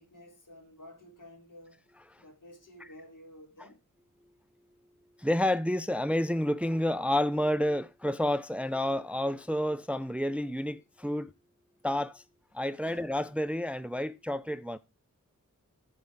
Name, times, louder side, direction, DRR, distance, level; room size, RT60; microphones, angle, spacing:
voice 1, 0.0-1.8 2.2-3.8 12.8-13.1, left 1 dB, 75° left, 4.1 m, -52 dB
voice 2, 5.2-11.3 11.8-12.2 12.5-14.8, left 1 dB, 5° right, 0.5 m, -29 dB
15.0 x 5.3 x 3.6 m
wide cardioid pair, 85°, 32 cm